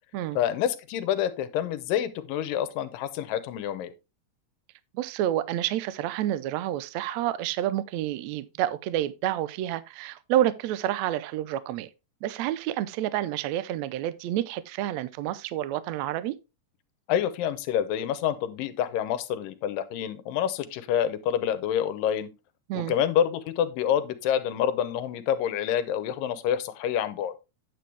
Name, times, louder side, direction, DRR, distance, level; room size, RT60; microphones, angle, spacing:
voice 1, 0.4-3.9 17.1-22.3 22.7-27.4, left 9 dB, 85° left, 2.6 m, -27 dB
voice 2, 4.9-11.9 12.2-16.4 22.7-22.9, right 13 dB, 85° right, 1.6 m, -29 dB
9.1 x 7.8 x 3.3 m
omnidirectional pair, 3.8 m